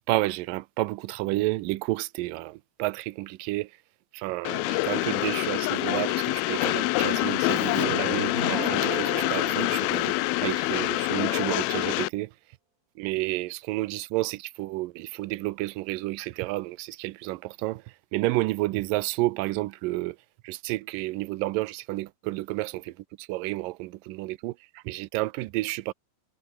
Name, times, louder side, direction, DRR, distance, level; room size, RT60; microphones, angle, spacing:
voice 1, 0.1-2.5 2.8-3.7 4.2-10.1 10.4-12.3 13.0-17.8 18.1-20.1 20.5-22.8 23.3-24.5 24.9-25.9, right 19 dB, 80° right, 2.1 m, -30 dB
Train, 4.5-12.1, left 22 dB, 80° left, 2.3 m, -26 dB
Keyboard (musical), 7.5-10.9, right 5 dB, 30° right, 1.7 m, -38 dB
omnidirectional pair, 4.6 m